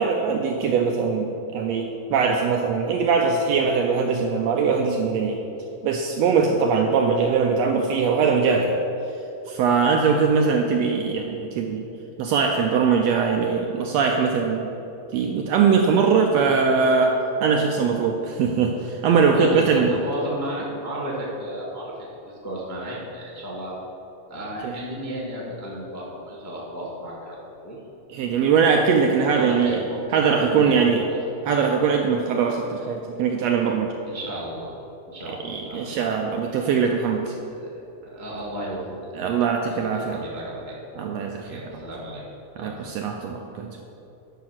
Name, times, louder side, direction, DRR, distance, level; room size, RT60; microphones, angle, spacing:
voice 1, 0.0-5.4 5.8-8.8 9.5-11.9 12.2-14.7 15.1-19.9 24.6-24.8 28.1-29.8 30.1-31.0 31.4-33.9 35.4-37.3 39.1-40.2 41.0-41.6 42.6-43.8, right 5 dB, 80° right, 3 dB, 1.5 m, -21 dB
voice 2, 19.3-21.9 22.2-23.7 24.3-27.4 27.6-27.8 29.3-30.0 30.3-31.2 34.0-34.7 35.1-36.0 37.5-37.7 38.0-39.4 39.7-40.8 41.4-42.2 42.6-42.7, right 1 dB, 10° left, -4 dB, 0.7 m, -34 dB
10.5 x 5.7 x 6.0 m, 3.0 s
omnidirectional pair, 3.5 m